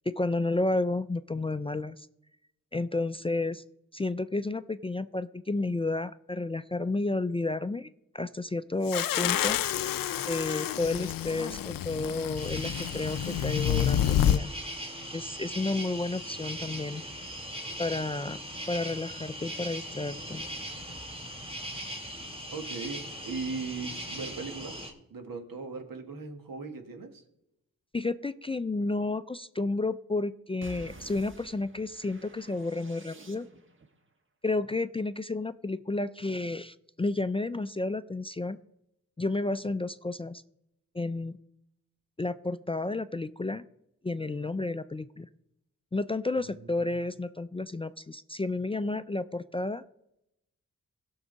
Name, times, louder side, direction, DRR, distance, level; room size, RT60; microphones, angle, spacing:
voice 1, 0.1-2.1 2.7-3.6 3.9-7.9 8.1-9.6 10.3-14.5 15.1-17.0 17.8-18.4 18.7-20.4 27.9-33.5 34.4-38.6 39.2-40.4 40.9-41.4 42.2-43.6 44.0-45.3 45.9-49.8, left 2 dB, 15° left, 12 dB, 0.4 m, -31 dB
sound 1, 8.9-14.4, left 11 dB, 75° left, 0.5 m, -28 dB
sound 2, 12.4-24.9, equal, 15° right, 2.6 m, -39 dB
voice 2, 22.5-27.2 46.4-46.7, right 4 dB, 75° right, 5 dB, 1.7 m, -38 dB
sound 3, 30.6-33.9, right 2 dB, 35° right, 1.3 m, -50 dB
17.0 x 6.3 x 4.0 m, 0.82 s
cardioid pair, 75°, 34 cm